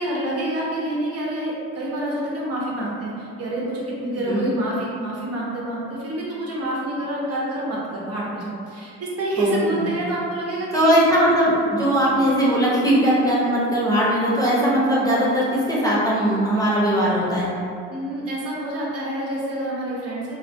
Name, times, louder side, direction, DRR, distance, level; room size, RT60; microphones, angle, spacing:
voice 1, 0.0-11.0 17.9-20.3, right 1 dB, 55° right, -5 dB, 0.8 m, -27 dB
voice 2, 9.4-9.9 10.7-17.5, equal, 10° left, -7 dB, 0.8 m, -19 dB
3.4 x 2.3 x 2.6 m, 2.4 s
cardioid pair, 90°, 30 cm